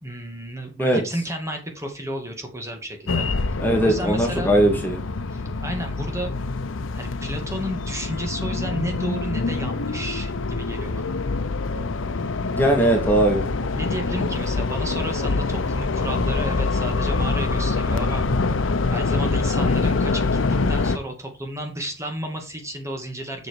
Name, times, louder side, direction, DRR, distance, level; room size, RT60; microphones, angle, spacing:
voice 1, 0.0-3.3 3.8-4.5 5.3-6.3 6.9-11.2 12.8-12.9 13.7-18.2 18.9-20.4 20.7-23.5, equal, 15° right, 3 dB, 2.2 m, -32 dB
sound 1, 3.1-21.0, left 3 dB, 85° left, 0.8 m, -25 dB
voice 2, 3.6-5.0 12.5-13.4, right 1 dB, 10° left, 1 dB, 1.9 m, -19 dB
8.0 x 6.2 x 4.7 m, 0.29 s
head